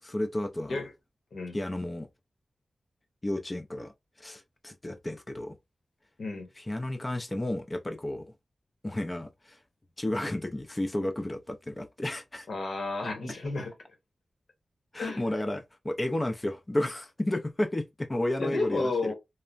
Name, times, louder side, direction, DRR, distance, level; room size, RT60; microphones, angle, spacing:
voice 1, 0.0-0.8 1.5-2.1 3.2-3.9 4.2-5.5 6.6-8.3 8.8-9.6 10.0-12.5 14.9-19.1, left 1 dB, 20° left, 0.4 m, -32 dB
voice 2, 12.5-13.7 15.0-15.2 18.4-19.1, left 3 dB, 80° left, 1.0 m, -32 dB
3.2 x 2.0 x 2.4 m
wide cardioid pair, 110°, 0 cm